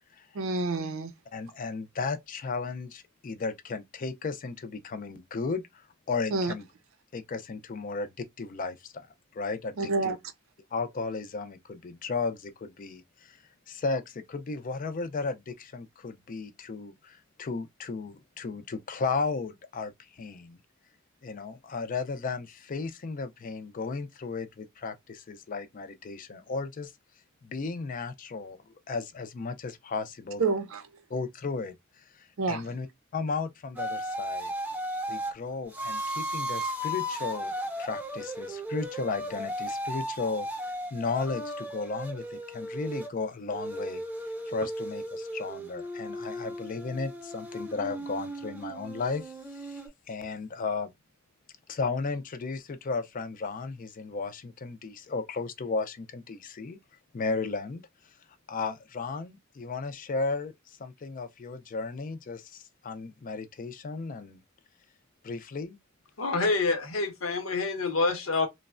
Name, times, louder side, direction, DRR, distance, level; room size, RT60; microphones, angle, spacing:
voice 1, 0.3-1.1 6.3-6.5 9.8-10.2 30.4-30.8 32.4-32.6, right 3 dB, 75° right, 0.5 m, -28 dB
voice 2, 1.3-6.7 7.1-9.1 9.3-10.2 10.7-13.4 13.7-20.6 21.2-26.9 27.4-28.6 28.9-30.4 31.1-31.8 32.2-32.9 33.1-34.5 35.1-37.5 37.8-40.5 40.9-44.0 44.5-49.8 50.1-50.9 51.7-56.8 57.1-57.8 58.5-64.4 65.2-65.8, left 4 dB, 40° left, 0.4 m, -34 dB
sound 1, 33.8-35.3 35.7-43.1 43.5-49.9, equal, 10° right, 0.7 m, -35 dB
voice 3, 66.2-68.5, left 3 dB, 85° left, 0.8 m, -27 dB
3.1 x 2.1 x 2.4 m
head